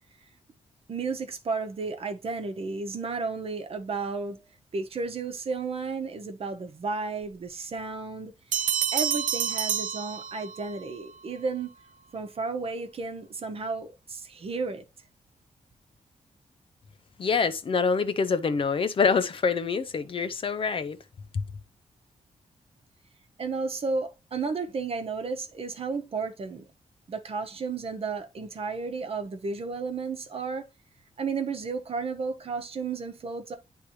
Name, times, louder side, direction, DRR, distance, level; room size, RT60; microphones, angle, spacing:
voice 1, 0.9-4.4 4.7-8.6 8.9-11.7 12.1-14.9 23.4-26.7 27.1-30.7 31.2-33.5, right 4 dB, 50° right, 1.0 m, -33 dB
sound 1, 8.5-10.8, right 9 dB, 80° right, 0.5 m, -28 dB
voice 2, 17.2-21.0 21.3-21.4, left 5 dB, 45° left, 0.5 m, -25 dB
10.0 x 3.3 x 3.0 m
wide cardioid pair, 155°, 13 cm